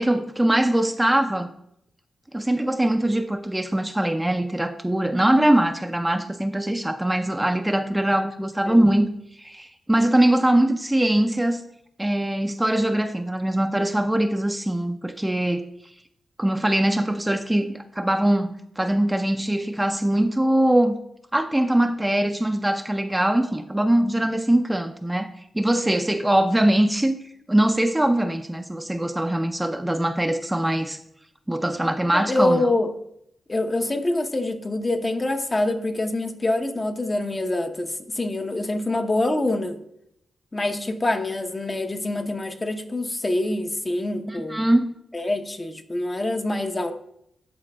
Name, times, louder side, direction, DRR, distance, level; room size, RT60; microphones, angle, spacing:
voice 1, 0.0-1.5 2.3-9.1 9.4-11.6 12.0-15.6 16.4-21.0 21.3-27.2 27.5-31.0 31.5-32.7 44.3-45.0, right 1 dB, 10° right, 7 dB, 0.4 m, -22 dB
voice 2, 32.1-32.9 33.5-39.8 40.5-44.7 45.1-46.9, left 2 dB, 30° left, 6 dB, 0.7 m, -25 dB
11.5 x 4.0 x 2.2 m, 0.75 s
supercardioid pair, 50°, 0 cm